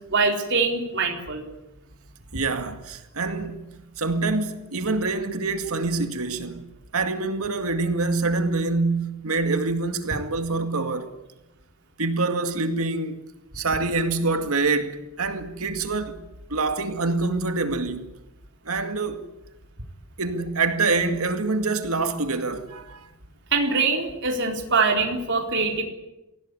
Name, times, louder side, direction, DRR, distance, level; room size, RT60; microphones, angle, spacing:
voice 1, 0.1-1.4 23.5-25.8, right 4 dB, 55° right, 4.1 m, -23 dB
voice 2, 2.3-6.6 6.9-11.1 12.0-13.3 13.5-16.2 16.5-18.1 18.6-19.3 20.2-23.1, right 3 dB, 75° right, 2.2 m, -26 dB
24.0 x 17.0 x 9.8 m
head